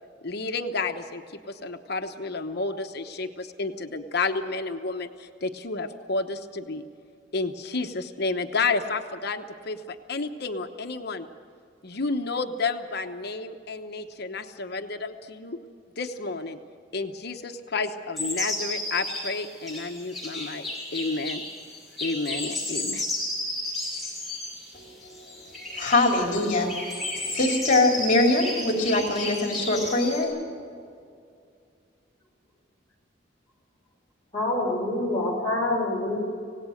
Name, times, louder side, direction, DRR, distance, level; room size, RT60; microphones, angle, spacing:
voice 1, 0.2-1.2 1.5-6.8 7.3-11.3 11.8-15.6 16.0-16.6 16.9-20.7 20.9-21.4 22.0-23.1, left 3 dB, 60° left, 6 dB, 1.1 m, -31 dB
sound 1, 18.2-30.2, left 1 dB, ahead, 7.3 m, -33 dB
voice 2, 24.7-30.4, left 2 dB, 45° left, 1 dB, 3.2 m, -24 dB
voice 3, 34.3-36.2, left 2 dB, 15° left, -2 dB, 5.9 m, -26 dB
26.0 x 18.0 x 6.5 m, 2.3 s
head